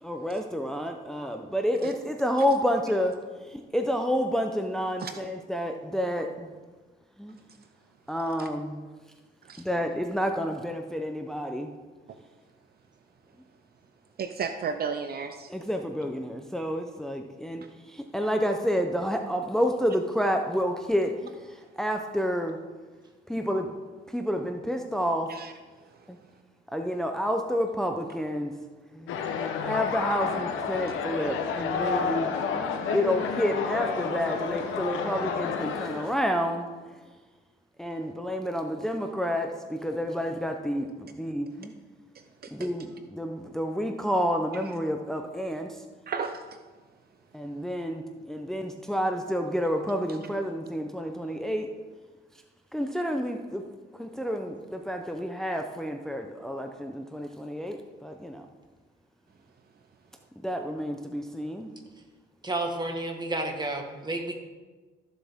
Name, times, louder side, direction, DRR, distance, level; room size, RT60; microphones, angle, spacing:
voice 1, 0.0-3.1 3.5-6.5 7.2-7.4 8.1-8.8 9.6-11.7 15.5-22.6 23.3-23.7 24.1-25.3 26.1-26.2 26.7-28.5 28.9-29.1 29.6-36.9 37.8-41.7 42.5-45.8 47.3-51.7 52.7-53.6 54.0-58.4 60.4-61.7, equal, ahead, 4 dB, 0.7 m, -29 dB
voice 2, 14.2-15.5 17.6-17.7 25.3-25.5 25.9-26.0 42.1-42.5 46.1-46.6, right 6 dB, 50° right, 8 dB, 0.7 m, -34 dB
sound 1, 29.1-36.1, left 6 dB, 85° left, 1.0 m, -30 dB
voice 3, 62.4-64.3, right 2 dB, 20° right, 3 dB, 1.6 m, -31 dB
14.0 x 7.1 x 3.7 m, 1.3 s
cardioid pair, 90°, 20 cm